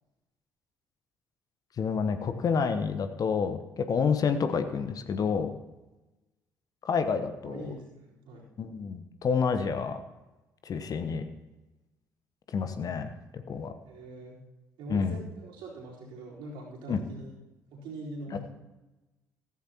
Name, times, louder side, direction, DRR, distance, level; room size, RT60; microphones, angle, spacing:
voice 1, 1.8-5.6 6.8-7.7 8.6-10.0 10.6-11.2 12.5-13.7 14.9-15.2 16.9-17.0 18.3-18.4, left 6 dB, 40° left, 9 dB, 1.0 m, -29 dB
voice 2, 7.4-8.5 13.9-14.4 14.8-17.3 17.7-18.4, right 2 dB, 60° right, -5 dB, 4.1 m, -43 dB
15.0 x 14.5 x 2.9 m, 1.1 s
figure-of-eight pair, 45°, 9 cm